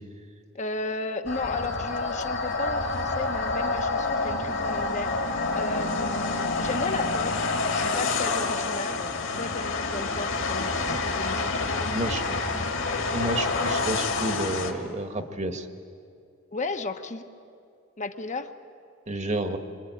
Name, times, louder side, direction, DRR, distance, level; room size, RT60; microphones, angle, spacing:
voice 1, 0.5-5.1 5.5-11.5 16.5-17.2 18.0-18.5, left 3 dB, 35° left, 6 dB, 1.1 m, -34 dB
sound 1, 1.3-14.7, left 3 dB, 60° left, 2.3 m, -28 dB
voice 2, 11.9-12.6 13.1-15.7 19.1-19.6, right 1 dB, 35° right, 7 dB, 1.6 m, -30 dB
26.0 x 24.5 x 9.3 m, 2.4 s
head